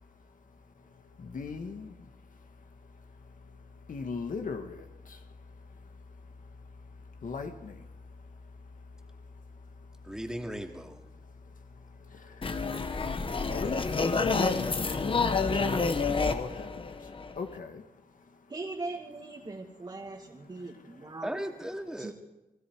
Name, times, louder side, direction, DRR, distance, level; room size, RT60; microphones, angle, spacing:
voice 1, 1.2-1.9 3.9-4.8 7.2-7.7 13.5-16.7 17.4-17.8, left 4 dB, 60° left, 5 dB, 2.0 m, -37 dB
voice 2, 10.0-11.1 21.2-22.1, equal, 5° right, 3 dB, 2.5 m, -37 dB
sound 1, 12.4-17.6, left 4 dB, 35° left, 1.3 m, -29 dB
voice 3, 18.5-21.4 22.0-22.1, right 3 dB, 30° right, -2 dB, 2.3 m, -40 dB
29.0 x 19.5 x 4.8 m, 1.0 s
wide cardioid pair, 115°, 16 cm